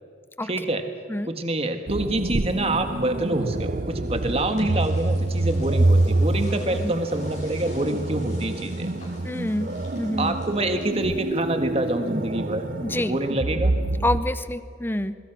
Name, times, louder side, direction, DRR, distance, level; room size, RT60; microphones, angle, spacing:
voice 1, 0.4-0.8 1.3-8.9 10.2-12.7 13.0-13.7, right 1 dB, 30° right, 7 dB, 1.6 m, -26 dB
sound 1, 1.9-14.2, right 2 dB, 45° right, 0.7 m, -26 dB
sound 2, 3.7-11.4, left 2 dB, 40° left, 6.4 m, -48 dB
voice 2, 6.6-6.9 9.2-9.7 10.0-10.4 12.8-13.2 14.0-15.2, left 1 dB, 10° left, 13 dB, 0.6 m, -27 dB
24.0 x 22.0 x 6.2 m, 2.3 s
head